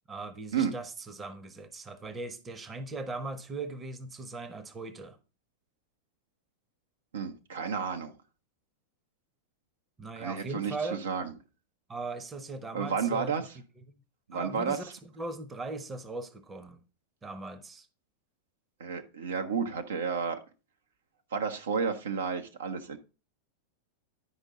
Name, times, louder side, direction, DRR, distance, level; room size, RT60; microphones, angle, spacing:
voice 1, 0.1-5.2 10.0-11.0 11.9-13.4 14.3-16.8 17.2-17.9, right 3 dB, 15° right, 0.9 m, -39 dB
voice 2, 7.1-8.1 10.2-11.3 12.7-13.4 14.3-14.8 18.8-20.4 21.3-23.0, right 6 dB, 65° right, 0.8 m, -31 dB
9.8 x 5.2 x 3.7 m
figure-of-eight pair, 90°, 0 cm